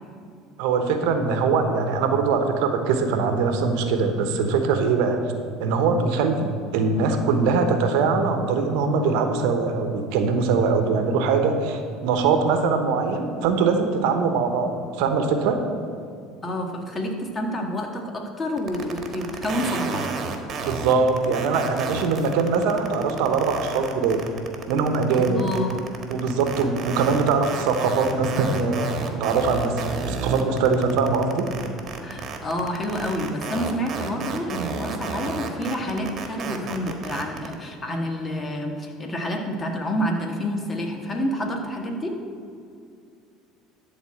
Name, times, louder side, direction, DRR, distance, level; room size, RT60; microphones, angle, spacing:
voice 1, 0.6-5.2 5.6-15.6 20.6-24.2 24.7-25.4 26.1-28.9 29.2-31.5, right 4 dB, 75° right, 6 dB, 1.0 m, -22 dB
voice 2, 16.4-20.1 25.1-25.8 32.0-42.2, equal, 25° left, 2 dB, 1.8 m, -28 dB
sound 1, 18.6-37.5, right 5 dB, 45° right, 1.4 m, -32 dB
12.0 x 4.1 x 7.8 m, 2.4 s
supercardioid pair, 85°, 0 cm